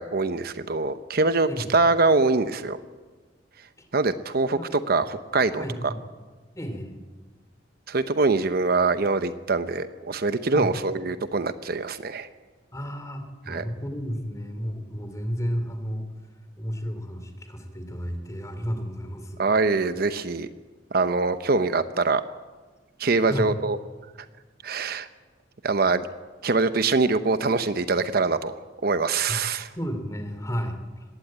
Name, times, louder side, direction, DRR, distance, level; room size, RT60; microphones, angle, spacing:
voice 1, 0.0-2.8 3.9-5.9 7.9-12.3 13.5-13.6 19.4-20.5 20.9-22.2 23.0-23.8 24.6-25.1 25.6-26.1 26.4-28.5 28.8-29.7, right 3 dB, 55° right, 11 dB, 0.8 m, -24 dB
voice 2, 1.4-1.8 3.8-3.9 4.5-4.7 5.0-5.1 5.6-6.0 6.6-7.0 10.5-10.7 12.7-16.1 16.6-19.5 23.2-23.6 29.3-29.4 29.7-31.0, equal, 15° left, 7 dB, 2.8 m, -32 dB
20.5 x 16.5 x 8.9 m, 1.3 s
head